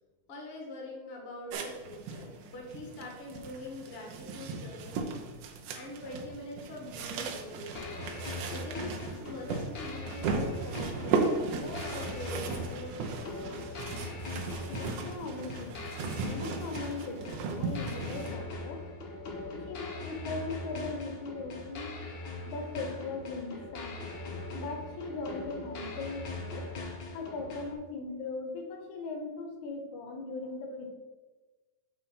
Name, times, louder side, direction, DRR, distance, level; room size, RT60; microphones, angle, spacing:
voice 1, 0.3-8.0 8.5-14.0 30.4-31.0, left 1 dB, 30° left, -2 dB, 1.2 m, -44 dB
sound 1, 1.5-18.4, right 4 dB, 90° right, 2.3 m, -36 dB
sound 2, 7.7-27.7, left 2 dB, 55° left, 1.3 m, -41 dB
voice 2, 14.7-15.8 16.2-17.3 17.6-18.9 19.5-21.9 22.5-24.0 24.5-26.7 27.1-31.0, left 3 dB, 80° left, 5 dB, 2.3 m, -39 dB
7.2 x 4.3 x 5.3 m, 1.2 s
omnidirectional pair, 3.4 m